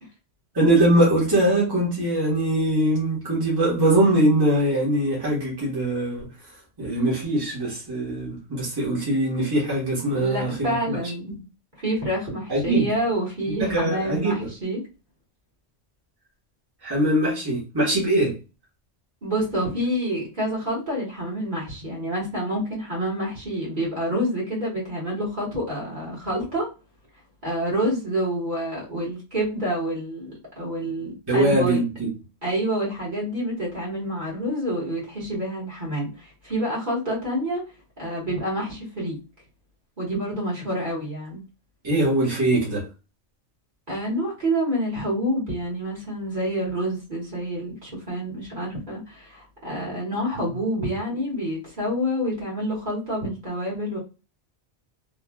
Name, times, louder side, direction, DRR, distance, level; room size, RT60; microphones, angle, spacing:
voice 1, 0.5-6.2 6.8-11.0 12.5-12.9 13.6-14.5 16.8-18.3 31.3-32.1 41.8-42.8, right 1 dB, 20° right, 1.1 m, -22 dB
voice 2, 10.1-11.3 11.8-14.8 19.2-26.7 27.4-31.8 32.4-37.6 38.0-39.2 40.0-41.4 43.9-54.0, equal, 40° right, 1.5 m, -28 dB
3.1 x 2.3 x 2.2 m
omnidirectional pair, 1.2 m